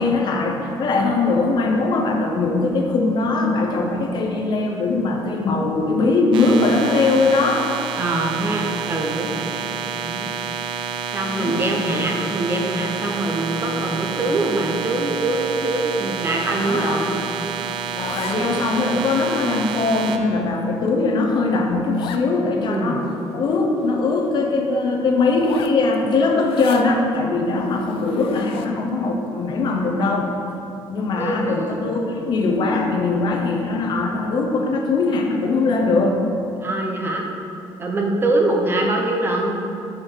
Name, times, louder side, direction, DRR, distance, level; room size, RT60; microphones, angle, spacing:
voice 1, 0.0-7.7 11.2-11.6 16.6-17.0 18.0-30.3 30.9-36.2, left 3 dB, 55° left, 1 dB, 0.8 m, -21 dB
sound 1, 6.3-20.2, right 7 dB, 60° right, 0.5 m, -29 dB
voice 2, 8.0-9.7 10.0-10.3 11.1-17.1 18.4-18.6 22.7-23.0 31.2-31.8 36.6-37.2 37.8-39.6, right 2 dB, 25° right, 1 dB, 0.7 m, -23 dB
Zipper (clothing), 14.0-15.0 15.3-15.5 15.8-17.5 17.7-18.7 19.3-19.4 20.0-20.1 20.5-20.6 20.9-21.0 21.2-21.3 21.9-22.3 22.7-22.8 23.0-24.3 25.3-26.9 27.5-28.9, left 7 dB, 80° left, 0.4 m, -39 dB
4.9 x 4.8 x 5.6 m, 2.7 s
cardioid pair, 140°, 9 cm